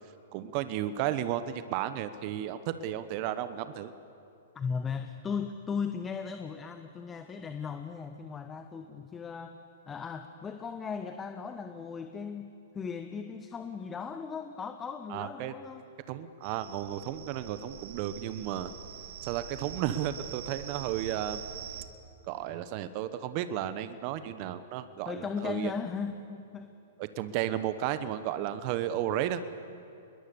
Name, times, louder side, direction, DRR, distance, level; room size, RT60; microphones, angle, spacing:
voice 1, 0.3-3.9 15.1-15.5 16.1-18.7 19.2-21.4 22.3-25.7 27.0-29.4, right 11 dB, 45° right, 12 dB, 1.1 m, -33 dB
voice 2, 4.5-9.6 9.9-15.8 25.1-26.7, left 6 dB, 20° left, 7 dB, 1.2 m, -37 dB
sound 1, 16.4-21.8, right 9 dB, 60° right, 2.3 m, -44 dB
28.0 x 21.5 x 7.1 m, 2.7 s
hypercardioid pair, 120°, 0 cm